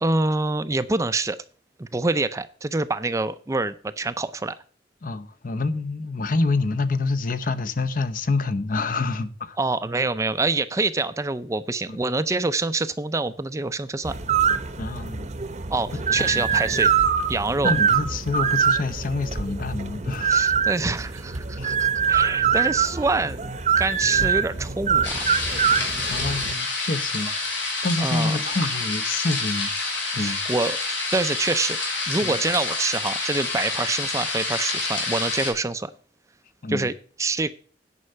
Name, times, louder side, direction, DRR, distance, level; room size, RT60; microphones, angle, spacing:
voice 1, 0.0-1.4 1.8-4.5 9.6-14.1 15.7-16.9 17.3-17.7 20.3-23.5 23.8-25.3 28.0-28.4 30.2-35.9 36.7-36.9 37.2-37.5, right 3 dB, 15° right, 0.4 m, -26 dB
voice 2, 5.0-9.6 11.9-12.0 14.8-15.3 16.1-16.6 17.6-20.4 21.6-21.7 24.2-24.3 26.1-27.3 27.8-29.7 30.1-30.4 32.2-32.3 36.6-36.9, left 3 dB, 50° left, 0.7 m, -27 dB
sound 1, 14.0-26.5, right 7 dB, 40° right, 0.8 m, -24 dB
sound 2, 25.0-35.5, left 3 dB, 90° left, 3.9 m, -28 dB
9.7 x 5.5 x 7.8 m
head